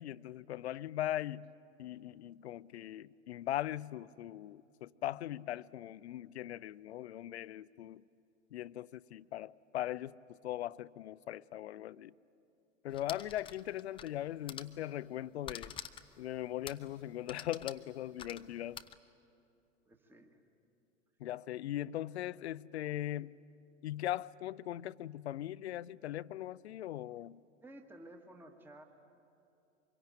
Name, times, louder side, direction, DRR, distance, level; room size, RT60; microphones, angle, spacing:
voice 1, 0.0-1.5 1.8-8.0 8.5-12.1 12.8-15.8 16.2-18.8 21.2-23.4 23.8-27.4, left 13 dB, 60° left, 0.5 m, -40 dB
sound 1, 12.9-14.2 14.4-14.8 15.4-16.2 16.6-16.9 17.3-18.9, left 8 dB, 15° left, 0.6 m, -47 dB
voice 2, 19.8-20.4 27.6-28.8, right 1 dB, 5° right, 1.4 m, -54 dB
25.0 x 22.0 x 9.1 m
figure-of-eight pair, 90°, 38 cm